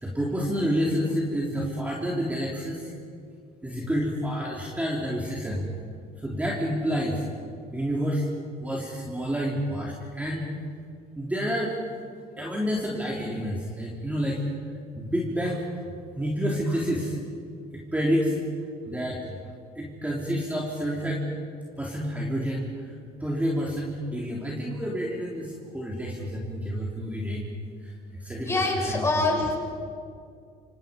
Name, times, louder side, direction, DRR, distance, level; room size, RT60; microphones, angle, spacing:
voice 1, 0.0-2.9 3.6-5.7 6.2-7.3 7.7-8.3 8.6-10.5 11.2-11.8 12.4-14.4 14.9-15.7 16.2-17.2 17.7-18.4 18.9-19.2 19.8-21.3 21.8-22.9 23.2-27.5 27.8-27.9 28.2-28.6 28.9-29.0, equal, 10° right, -3 dB, 3.5 m, -29 dB
voice 2, 28.4-29.6, left 2 dB, 15° left, 0 dB, 6.3 m, -25 dB
28.0 x 26.0 x 5.3 m, 2.3 s
cardioid pair, 110°, 17 cm